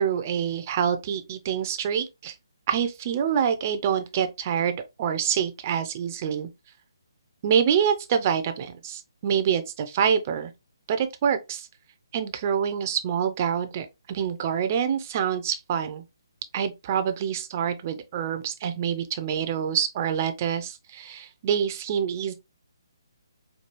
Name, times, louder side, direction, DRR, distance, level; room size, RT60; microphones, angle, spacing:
voice 1, 0.0-2.3 2.7-6.5 7.4-10.5 10.9-11.7 12.1-16.0 16.5-22.3, right 8 dB, 30° right, 0.5 m, -26 dB
4.5 x 2.3 x 3.0 m
hypercardioid pair, 155°, 2 cm